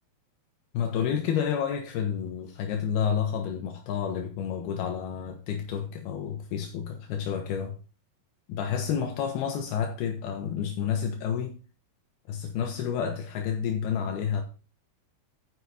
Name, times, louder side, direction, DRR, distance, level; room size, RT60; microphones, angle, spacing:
voice 1, 0.7-7.8 8.5-11.6 12.3-14.4, left 8 dB, 80° left, 2.9 m, -30 dB
9.8 x 8.0 x 4.1 m
omnidirectional pair, 4.6 m